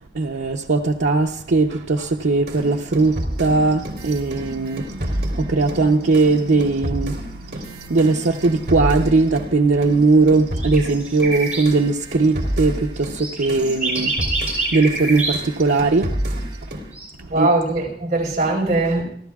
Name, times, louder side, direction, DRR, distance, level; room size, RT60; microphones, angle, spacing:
voice 1, 0.1-16.1 17.3-17.5, right 3 dB, 90° right, 0.7 m, -19 dB
sound 1, 2.5-9.5 9.8-16.9, equal, 60° right, 2.8 m, -29 dB
sound 2, 10.5-11.6 13.2-15.5 16.9-17.0, right 3 dB, 5° right, 7.2 m, -26 dB
voice 2, 17.3-19.0, right 2 dB, 40° right, 4.3 m, -20 dB
30.0 x 12.5 x 2.4 m
head